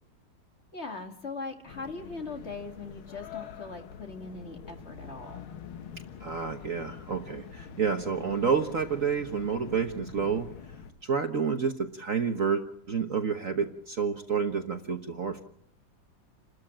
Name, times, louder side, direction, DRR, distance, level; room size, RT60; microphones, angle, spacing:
voice 1, 0.7-5.5, left 3 dB, 35° left, 5 dB, 2.2 m, -40 dB
sound 1, 1.7-10.9, left 7 dB, 90° left, 2.2 m, -45 dB
voice 2, 6.2-10.5 11.0-15.4, right 6 dB, 45° right, 6 dB, 1.4 m, -29 dB
29.0 x 13.0 x 8.8 m, 0.68 s
omnidirectional pair, 2.2 m